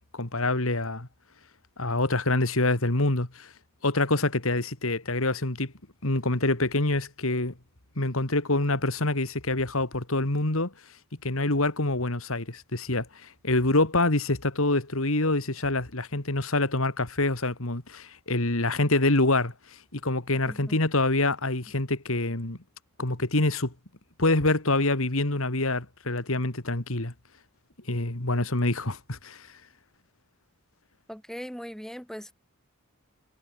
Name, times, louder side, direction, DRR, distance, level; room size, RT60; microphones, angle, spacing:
voice 1, 0.1-1.1 1.8-3.5 3.8-5.7 6.0-7.5 8.0-10.7 11.2-19.5 19.9-22.6 23.0-23.7 24.2-27.1 27.9-29.5, left 2 dB, 70° left, 2.7 m, -26 dB
voice 2, 20.5-20.8 31.1-32.3, equal, ahead, 3.3 m, -40 dB
head